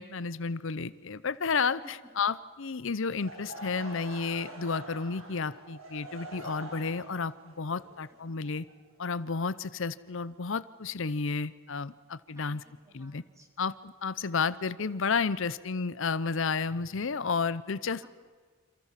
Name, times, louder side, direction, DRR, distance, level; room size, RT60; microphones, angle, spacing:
voice 1, 0.0-8.6 9.0-12.6 12.9-13.2 13.6-18.0, left 5 dB, 60° left, 16 dB, 0.7 m, -32 dB
Laughter / Crowd, 3.1-9.0, right 2 dB, 80° right, 7.6 m, -45 dB
voice 2, 8.1-8.6 12.4-13.5 17.2-17.3 18.0-18.1, right 1 dB, 15° right, 3 dB, 4.1 m, -59 dB
28.5 x 27.5 x 7.5 m, 1.5 s
head